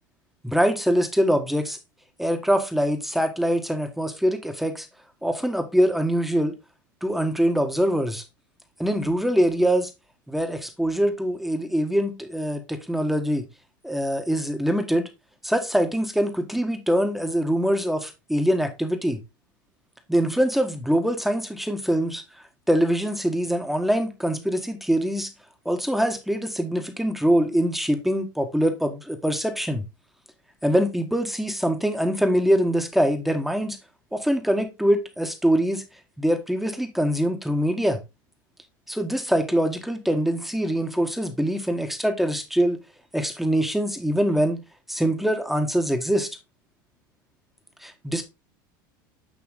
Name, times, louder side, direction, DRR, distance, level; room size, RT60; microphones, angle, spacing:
voice 1, 0.4-1.8 2.2-4.9 5.2-6.5 7.0-8.2 8.8-9.9 10.3-13.5 13.8-15.1 15.4-19.2 20.1-22.2 22.7-25.3 25.6-29.8 30.6-33.8 34.1-35.8 36.2-38.0 38.9-42.8 43.1-44.6 44.9-46.3 47.8-48.2, equal, ahead, 1.4 m, -23 dB
8.9 x 3.0 x 3.9 m
hypercardioid pair, 95°, 11 cm